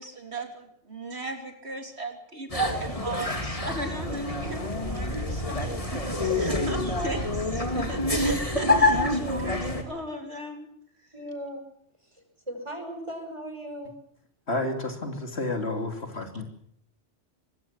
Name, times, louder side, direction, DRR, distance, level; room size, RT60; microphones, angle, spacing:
voice 1, 0.0-10.7, right 1 dB, 60° right, 5 dB, 3.6 m, -37 dB
sound 1, 2.5-9.8, left 2 dB, 30° left, 3.1 m, -27 dB
voice 2, 5.9-6.4 7.8-7.9 8.5-9.4 11.1-11.6 12.1-13.9, right 1 dB, 25° right, 5 dB, 5.8 m, -37 dB
voice 3, 14.5-16.4, left 2 dB, 60° left, 6 dB, 3.2 m, -30 dB
24.0 x 22.0 x 7.4 m, 0.66 s
omnidirectional pair, 1.2 m